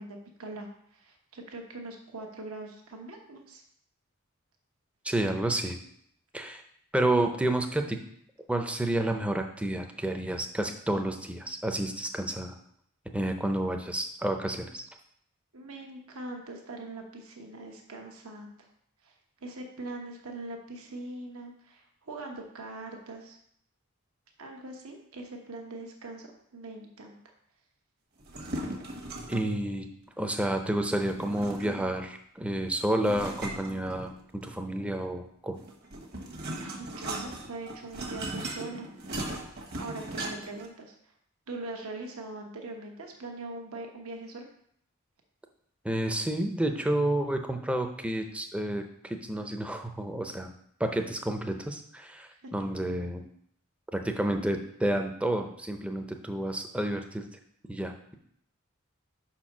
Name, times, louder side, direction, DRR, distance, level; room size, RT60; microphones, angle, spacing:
voice 1, 0.0-3.6 15.5-18.7 19.0-19.1 19.4-23.4 24.4-27.2 36.6-38.9 39.8-40.9 41.5-44.5 52.3-52.5, right 2 dB, 75° right, 2 dB, 1.0 m, -42 dB
voice 2, 5.0-5.8 6.3-6.6 6.9-8.0 8.5-12.6 13.1-14.8 29.3-29.9 30.2-35.6 45.8-50.5 50.8-53.2 53.9-57.3 57.7-57.9, right 1 dB, 5° right, 5 dB, 0.6 m, -30 dB
sound 1, 28.2-29.6 31.0-32.0 33.0-34.4 35.6-40.7, right 1 dB, 50° right, 1.2 m, -38 dB
5.3 x 4.4 x 6.0 m, 0.68 s
head